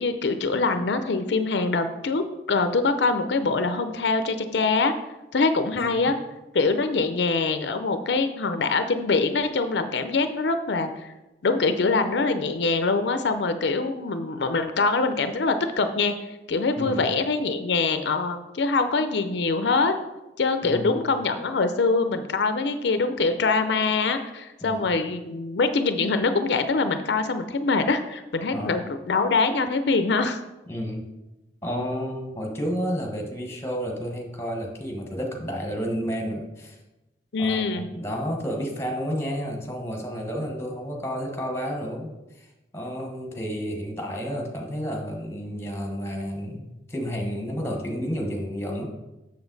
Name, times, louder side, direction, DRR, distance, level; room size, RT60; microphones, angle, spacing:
voice 1, 0.0-4.9 5.3-6.1 6.5-11.1 11.4-16.1 16.5-20.0 20.4-30.4 37.3-37.9, left 3 dB, 80° left, 9 dB, 0.5 m, -24 dB
voice 2, 16.8-17.1 20.6-21.0 24.6-24.9 28.5-28.8 30.7-31.1 31.6-36.8 37.4-42.5 42.7-48.9, equal, 15° left, 1 dB, 1.2 m, -31 dB
7.0 x 6.7 x 4.0 m, 1.0 s
head